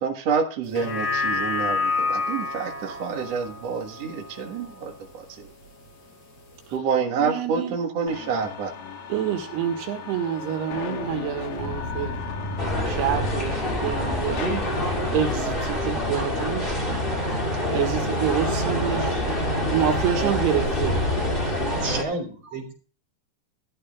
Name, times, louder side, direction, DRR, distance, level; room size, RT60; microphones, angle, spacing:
voice 1, 0.0-5.2 6.7-8.7 20.2-20.8 21.6-22.0, right 6 dB, 55° right, 2 dB, 2.1 m, -28 dB
sound 1, 0.6-5.2 5.6-5.7, left 3 dB, 45° left, 5.6 m, -29 dB
voice 2, 7.2-7.7 9.1-12.2 12.9-14.6 15.1-16.8 17.7-19.1 19.7-21.6, right 9 dB, 80° right, 4 dB, 3.6 m, -27 dB
sound 2, 8.1-15.3, left 4 dB, 65° left, 3.1 m, -34 dB
sound 3, 12.6-22.0, left 1 dB, 15° left, 1.9 m, -26 dB
voice 3, 21.8-22.7, right 2 dB, 35° right, 3 dB, 4.0 m, -31 dB
15.5 x 12.0 x 2.4 m, 0.40 s
omnidirectional pair, 4.7 m